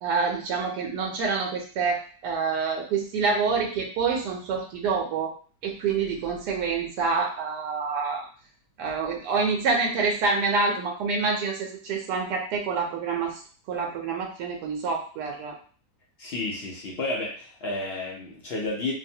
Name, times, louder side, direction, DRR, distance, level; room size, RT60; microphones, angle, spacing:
voice 1, 0.0-5.3 5.6-8.3 8.8-13.4 13.7-15.5, right 4 dB, 90° right, 0 dB, 1.2 m, -27 dB
voice 2, 16.2-18.9, left 2 dB, 60° left, -2 dB, 0.6 m, -31 dB
2.8 x 2.1 x 2.7 m, 0.41 s
omnidirectional pair, 1.7 m